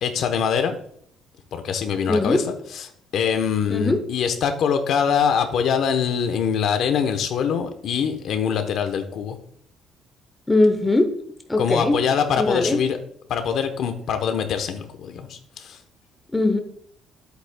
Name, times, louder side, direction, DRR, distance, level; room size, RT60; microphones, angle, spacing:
voice 1, 0.0-0.8 1.5-2.4 3.1-9.4 11.6-13.0 13.3-15.8, left 7 dB, 60° left, 7 dB, 0.9 m, -23 dB
voice 2, 2.1-2.4 3.7-4.0 10.5-11.1 11.5-12.0 12.4-12.8 16.3-16.6, left 2 dB, 10° left, 6 dB, 0.7 m, -20 dB
10.5 x 8.3 x 2.2 m, 0.66 s
cardioid pair, 135°, 0 cm